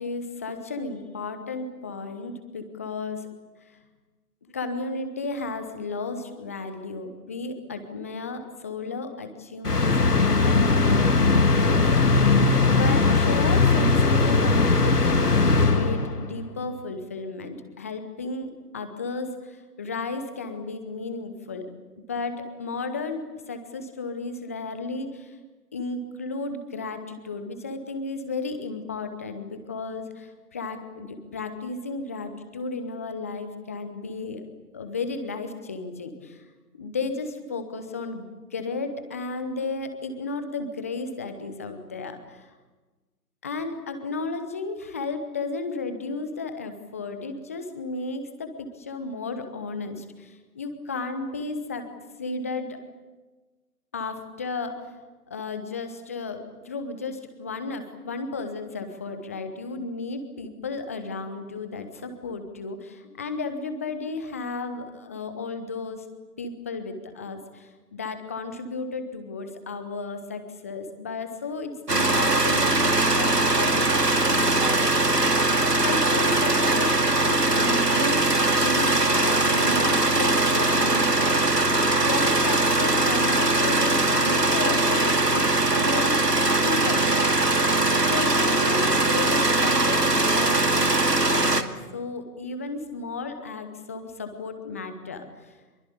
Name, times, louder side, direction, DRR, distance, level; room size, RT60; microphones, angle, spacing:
voice 1, 0.0-3.3 4.4-11.8 12.6-21.7 22.0-25.4 25.7-34.4 34.7-36.4 36.8-38.3 38.5-42.5 43.4-52.8 53.9-54.7 55.3-66.0 66.4-73.9 74.2-75.2 75.8-86.2 86.6-87.3 88.0-95.6, left 3 dB, 10° left, 8 dB, 0.9 m, -34 dB
sound 1, 9.6-16.3, left 3 dB, 75° left, 2.3 m, -20 dB
sound 2, 71.9-91.6, right 2 dB, 85° right, 2.4 m, -21 dB
25.0 x 23.0 x 8.5 m, 1.2 s
figure-of-eight pair, 150°, 47 cm